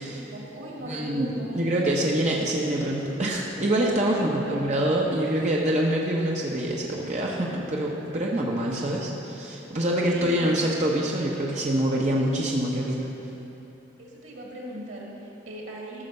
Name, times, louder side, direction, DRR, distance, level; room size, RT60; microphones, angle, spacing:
voice 1, 0.0-2.0 2.3-2.4 4.1-4.6 5.2-5.5 9.0-9.1 10.1-10.6 14.0-16.1, right 1 dB, 90° right, -2 dB, 2.2 m, -39 dB
voice 2, 0.8-13.1, right 1 dB, 40° right, -3 dB, 0.9 m, -25 dB
14.0 x 5.9 x 6.6 m, 3.0 s
head